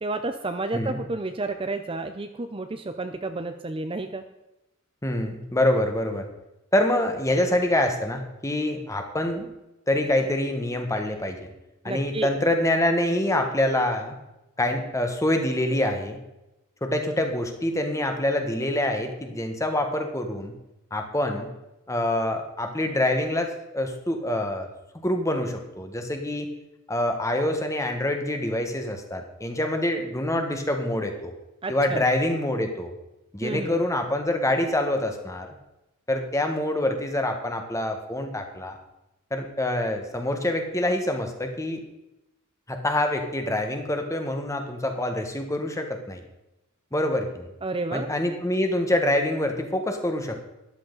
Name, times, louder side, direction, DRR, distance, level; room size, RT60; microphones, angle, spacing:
voice 1, 0.0-4.2 11.9-12.3 31.6-32.0 33.4-33.8 47.6-48.1, right 2 dB, 25° right, 8 dB, 0.6 m, -31 dB
voice 2, 5.0-6.3 6.7-9.5 9.9-11.5 11.8-14.2 14.6-16.2 16.8-20.5 20.9-21.5 21.9-24.7 25.0-26.5 26.9-31.3 31.7-32.9 33.3-35.5 36.1-38.8 39.3-41.8 42.7-46.2 46.9-47.5 47.9-50.4, left 1 dB, 15° left, 5 dB, 1.4 m, -26 dB
13.5 x 11.5 x 4.0 m, 0.94 s
head